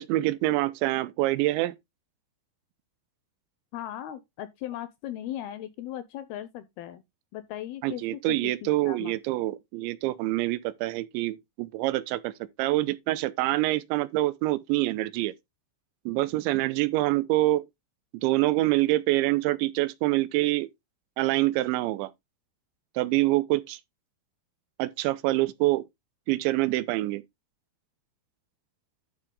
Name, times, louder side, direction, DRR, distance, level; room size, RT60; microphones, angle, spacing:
voice 1, 0.0-1.7 7.8-12.3 12.6-15.3 16.1-17.6 18.2-20.7 21.2-22.1 23.0-23.8 24.8-25.8 26.3-27.2, right 18 dB, 90° right, 3.1 m, -26 dB
voice 2, 3.7-7.0 7.3-9.5, left 12 dB, 80° left, 2.3 m, -38 dB
11.5 x 4.3 x 3.8 m
omnidirectional pair, 5.1 m